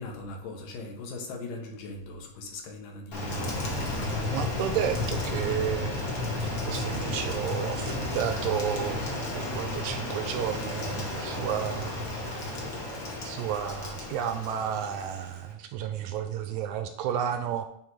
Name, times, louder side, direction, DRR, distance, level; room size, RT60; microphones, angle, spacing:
voice 1, 0.0-4.1, left 2 dB, 85° left, 2 dB, 3.0 m, -40 dB
Rain, 3.1-15.5, left 1 dB, 55° left, 0.9 m, -33 dB
voice 2, 4.3-6.1 6.4-9.0 9.3-12.6 13.2-17.7, right 9 dB, 80° right, 7 dB, 1.7 m, -32 dB
10.5 x 3.7 x 4.8 m, 0.72 s
omnidirectional pair, 3.7 m